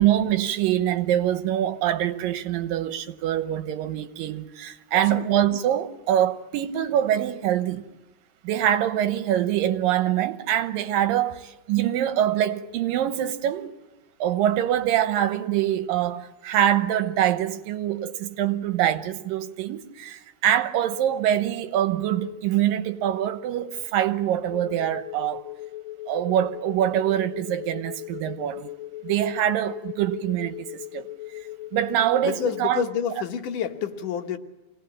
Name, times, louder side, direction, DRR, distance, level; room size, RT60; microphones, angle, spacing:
voice 1, 0.0-7.8 8.4-13.7 14.2-25.4 26.1-28.7 29.0-31.1 31.7-32.9, right 11 dB, 90° right, 2.8 m, -24 dB
voice 2, 4.9-5.3 32.2-34.4, left 8 dB, 70° left, 2.8 m, -29 dB
sound 1, 24.5-32.6, left 16 dB, 85° left, 2.7 m, -39 dB
27.0 x 18.5 x 8.8 m
omnidirectional pair, 3.9 m